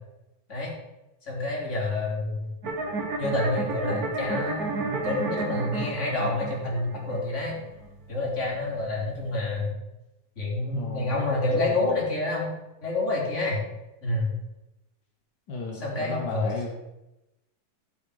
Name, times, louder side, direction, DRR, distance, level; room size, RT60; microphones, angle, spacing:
voice 1, 1.2-2.5 3.2-7.6 8.1-9.8 10.3-12.5 12.8-13.6 14.0-14.3 15.7-16.5, left 2 dB, 20° left, -4 dB, 3.3 m, -28 dB
sound 1, 2.6-9.6, right 3 dB, 40° right, 1.5 m, -32 dB
voice 2, 10.7-11.2 11.7-11.8 15.5-16.7, left 3 dB, 55° left, 0 dB, 1.1 m, -34 dB
13.0 x 7.6 x 4.9 m, 0.96 s
omnidirectional pair, 3.8 m